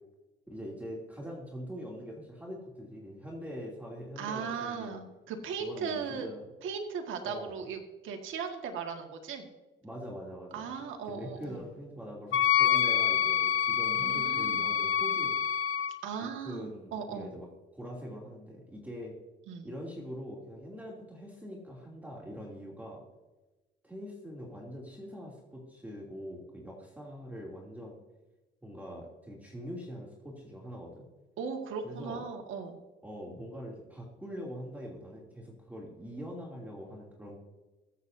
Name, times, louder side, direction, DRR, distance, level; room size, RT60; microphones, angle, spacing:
voice 1, 0.5-5.0 5.6-6.5 7.2-7.6 9.8-10.7 11.1-15.4 16.2-17.5 17.7-19.1 19.6-23.0 23.8-28.0 28.6-31.1 31.8-32.2 33.0-37.4, equal, 10° right, -3 dB, 2.9 m, -43 dB
voice 2, 4.2-6.3 6.6-9.5 10.5-11.6 13.9-14.7 16.0-17.3 19.5-19.7 31.4-32.8, right 6 dB, 80° right, 4 dB, 1.8 m, -38 dB
Wind instrument woodwind instrument, 12.3-15.9, left 9 dB, 85° left, 0.8 m, -27 dB
22.5 x 8.3 x 2.7 m, 1.1 s
cardioid pair, 90°, 20 cm